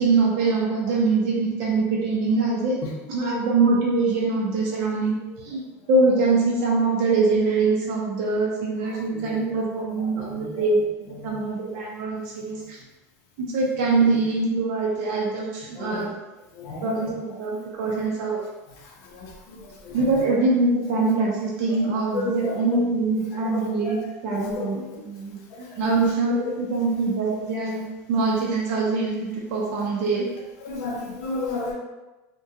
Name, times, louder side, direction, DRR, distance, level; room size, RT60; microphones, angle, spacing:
voice 1, 0.0-2.7 3.1-5.1 5.5-5.6 5.9-10.9 11.2-12.8 13.4-16.1 16.8-18.4 19.9-25.4 25.8-27.8 28.1-30.2, right 3 dB, 50° right, -4 dB, 0.5 m, -23 dB
voice 2, 10.2-10.6 11.2-11.3 15.8-16.1 16.6-16.9 19.1-19.3 19.8-20.2 22.1-22.5 23.5-23.7 24.3-24.8 25.8-26.0 30.6-31.7, left 3 dB, 45° left, -3 dB, 0.5 m, -32 dB
2.4 x 2.2 x 2.7 m, 1.1 s
supercardioid pair, 160°, 8 cm